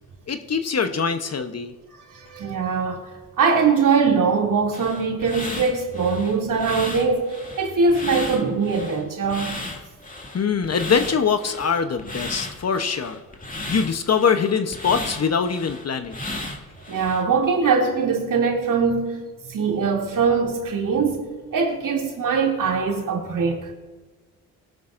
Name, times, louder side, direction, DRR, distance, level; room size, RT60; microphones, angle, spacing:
voice 1, 0.3-1.7 10.3-13.2 13.7-16.2, left 6 dB, 40° left, 0.9 m, -23 dB
voice 2, 2.1-3.0 3.4-9.6 16.9-19.2 19.5-23.7, right 5 dB, 55° right, 2.7 m, -22 dB
sound 1, 4.7-17.2, left 2 dB, 20° left, 2.3 m, -35 dB
18.5 x 11.5 x 2.6 m
supercardioid pair, 60°, 38 cm